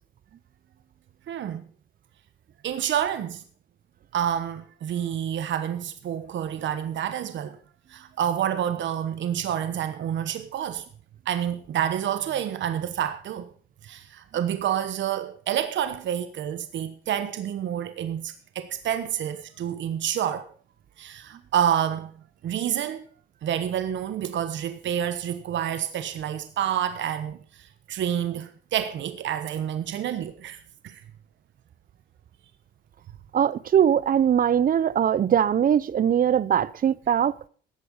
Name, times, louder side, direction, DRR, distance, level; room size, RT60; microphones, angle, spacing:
voice 1, 1.3-1.6 2.6-3.4 4.1-7.6 7.9-10.8 11.3-13.5 13.8-20.5 21.0-22.1 22.4-23.0 23.4-31.0, right 10 dB, 70° right, 1.1 m, -28 dB
voice 2, 33.3-37.3, right 9 dB, 45° right, 0.5 m, -21 dB
13.5 x 8.5 x 5.3 m
cardioid pair, 90°, 20 cm